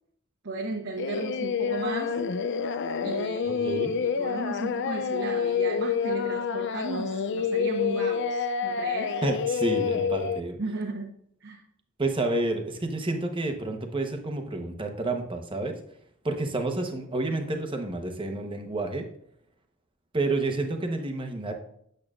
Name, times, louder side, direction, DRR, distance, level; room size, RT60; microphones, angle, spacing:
voice 1, 0.4-2.2 3.0-9.1 10.6-11.1 11.4-11.6, right 2 dB, 60° right, 0 dB, 0.9 m, -35 dB
Singing, 1.0-10.4, left 6 dB, 55° left, 0.4 m, -28 dB
voice 2, 3.5-3.9 9.2-10.6 12.0-15.8 16.2-19.0 20.1-21.5, right 2 dB, 25° right, 4 dB, 1.0 m, -29 dB
8.8 x 7.7 x 2.5 m, 0.70 s
head